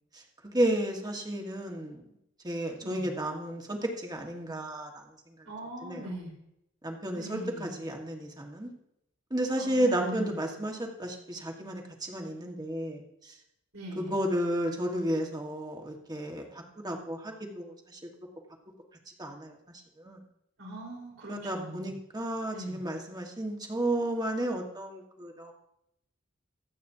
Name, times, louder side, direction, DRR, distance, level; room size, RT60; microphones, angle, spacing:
voice 1, 0.5-2.0 2.4-5.0 5.8-6.1 6.8-8.7 9.3-13.3 14.0-16.4 16.8-18.0 19.2-19.5 20.0-20.2 21.3-25.5, right 1 dB, 20° right, 2 dB, 1.5 m, -32 dB
voice 2, 5.4-6.3 7.1-7.8 9.6-10.4 13.7-14.1 20.6-21.9 22.5-22.8, right 1 dB, 80° right, -2 dB, 4.3 m, -40 dB
24.5 x 8.5 x 2.8 m, 0.81 s
head